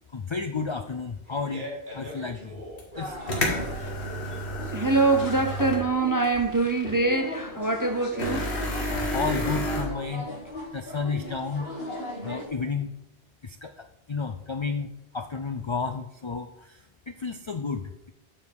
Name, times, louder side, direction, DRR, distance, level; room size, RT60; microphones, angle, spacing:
voice 1, 0.1-2.6 3.0-3.2 9.1-10.3 10.7-11.7 12.2-12.9 13.4-18.1, left 4 dB, 50° left, 0.3 m, -32 dB
Fart, 1.1-8.9, equal, 50° right, 1.9 m, -43 dB
sound 1, 2.8-2.9 3.3-5.9 6.2-6.3 8.2-9.8, equal, 85° left, 1.8 m, -30 dB
sound 2, 2.9-12.5, left 1 dB, 65° left, 2.2 m, -38 dB
voice 2, 4.7-8.5, right 3 dB, 30° right, 0.4 m, -24 dB
8.3 x 4.9 x 5.2 m
omnidirectional pair, 1.1 m